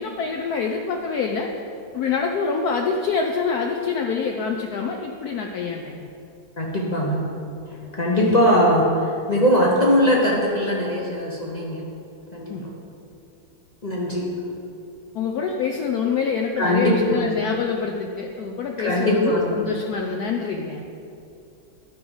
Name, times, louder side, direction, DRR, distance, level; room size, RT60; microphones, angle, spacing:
voice 1, 0.0-1.5 1.9-6.0 12.5-12.7 15.1-20.8, left 5 dB, 80° left, 2 dB, 0.8 m, -26 dB
voice 2, 6.6-7.2 7.7-11.9 12.3-12.7 13.8-14.3 16.6-17.3 18.8-19.6, equal, 55° left, -3 dB, 0.4 m, -21 dB
12.0 x 4.8 x 5.4 m, 2.6 s
omnidirectional pair, 2.2 m